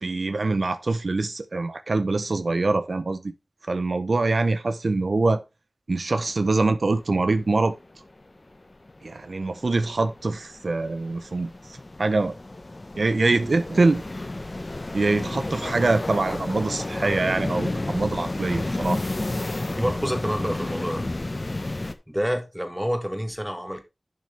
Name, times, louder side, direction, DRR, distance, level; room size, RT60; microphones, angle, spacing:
voice 1, 0.0-3.3 3.7-5.4 5.9-7.7 9.0-12.3 13.0-14.0 14.9-19.0, right 3 dB, 75° right, 0.7 m, -24 dB
sound 1, 7.4-7.5 7.9-21.9, left 2 dB, 45° left, 1.0 m, -31 dB
voice 2, 19.8-21.1 22.1-23.8, equal, 10° right, 1.8 m, -28 dB
11.0 x 6.3 x 3.4 m
wide cardioid pair, 45°, 0 cm